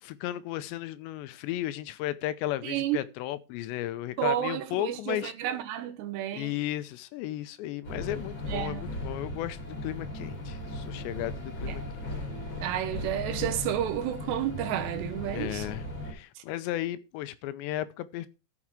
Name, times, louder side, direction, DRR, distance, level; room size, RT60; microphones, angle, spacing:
voice 1, 0.0-5.3 6.3-11.8 15.2-18.3, left 14 dB, 90° left, 3.0 m, -34 dB
voice 2, 2.6-3.0 4.2-6.5 8.5-8.8 11.7-11.9 12.6-15.7, right 11 dB, 80° right, 3.2 m, -31 dB
sound 1, 7.8-16.1, left 1 dB, 30° left, 3.1 m, -37 dB
13.0 x 6.1 x 4.8 m
omnidirectional pair, 5.0 m